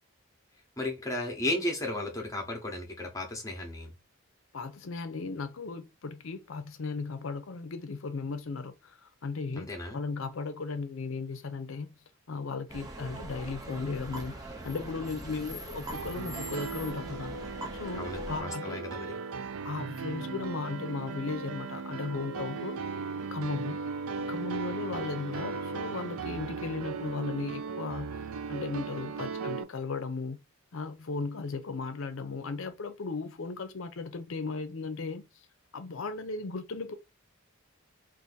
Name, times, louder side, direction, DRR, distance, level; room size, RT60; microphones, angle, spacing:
voice 1, 0.8-3.9 9.5-10.0 17.9-19.2, left 1 dB, 15° left, 0.8 m, -34 dB
voice 2, 4.5-11.9 12.3-14.3 14.6-17.3 17.7-18.8 19.6-22.8 23.3-23.9 24.2-28.1 28.5-30.4 30.7-35.3 35.7-36.9, left 4 dB, 65° left, 0.5 m, -36 dB
Traffic Light without Ambulance, 12.7-18.4, right 1 dB, 15° right, 0.5 m, -42 dB
Piano, 15.9-29.6, right 5 dB, 80° right, 0.4 m, -37 dB
2.6 x 2.5 x 3.9 m
head